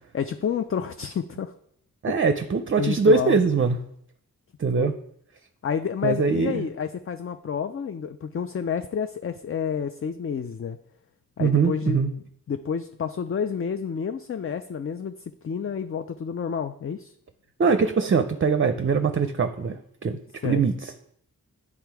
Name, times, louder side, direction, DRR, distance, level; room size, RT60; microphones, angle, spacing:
voice 1, 0.1-1.5 2.8-3.4 4.8-4.9 5.6-10.8 11.4-17.2 20.4-20.6, left 7 dB, 40° left, 9 dB, 0.4 m, -29 dB
voice 2, 2.0-3.8 4.6-4.9 6.0-6.7 11.4-12.1 17.6-20.2 20.4-20.9, right 5 dB, 35° right, 9 dB, 0.5 m, -22 dB
8.6 x 3.5 x 4.7 m, 0.70 s
cardioid pair, 50°, 35 cm